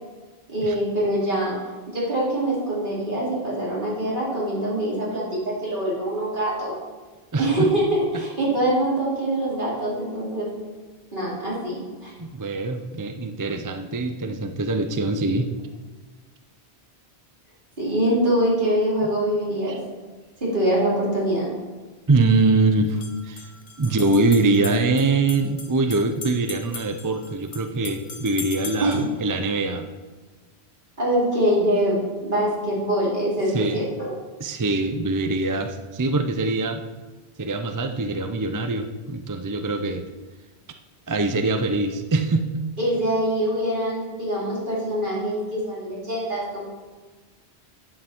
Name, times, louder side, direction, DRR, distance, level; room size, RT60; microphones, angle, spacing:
voice 1, 0.5-1.6 1.9-6.8 7.4-10.6 11.1-12.1 17.8-19.8 20.4-21.5 28.8-29.0 31.0-34.1 42.8-46.6, right 1 dB, 50° right, -7 dB, 3.9 m, -24 dB
voice 2, 7.3-7.7 12.2-15.5 19.7-19.8 22.1-23.5 23.8-29.9 33.5-33.9 34.4-36.8 37.4-40.1 41.1-42.6, right 3 dB, 25° right, 7 dB, 0.4 m, -23 dB
sound 1, 22.8-29.1, left 5 dB, 65° left, 1.0 m, -39 dB
11.0 x 8.7 x 4.5 m, 1.3 s
omnidirectional pair, 1.1 m